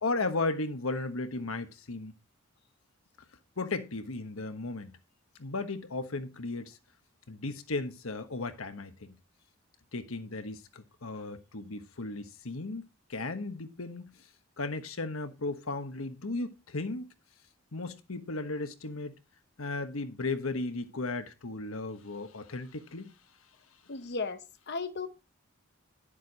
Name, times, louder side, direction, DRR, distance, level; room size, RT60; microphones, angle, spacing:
voice 1, 0.0-2.1 3.6-4.9 5.4-6.8 7.3-9.1 9.9-12.8 13.1-14.1 14.6-17.1 17.7-19.1 19.6-23.1, left 3 dB, 85° left, 1.2 m, -35 dB
voice 2, 23.9-25.1, left 4 dB, 55° left, 0.9 m, -35 dB
10.5 x 7.4 x 4.1 m
head